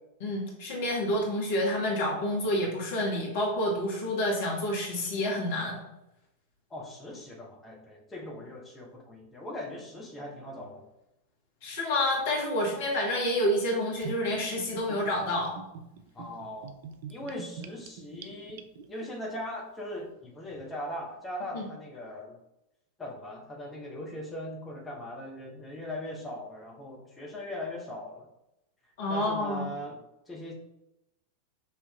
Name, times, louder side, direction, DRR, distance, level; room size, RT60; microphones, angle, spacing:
voice 1, 0.2-5.8 11.6-15.6 21.5-21.7 29.0-29.7, left 1 dB, 55° left, -2 dB, 1.4 m, -29 dB
voice 2, 6.7-10.9 16.1-16.8 17.1-22.4 23.0-28.3 29.1-30.0 30.3-30.6, left 1 dB, 15° left, -2 dB, 0.9 m, -40 dB
Gurgling / Bathtub (filling or washing), 14.0-19.1, right 6 dB, 55° right, 0.4 m, -44 dB
5.6 x 2.8 x 2.4 m, 0.88 s
figure-of-eight pair, 90°, 0 cm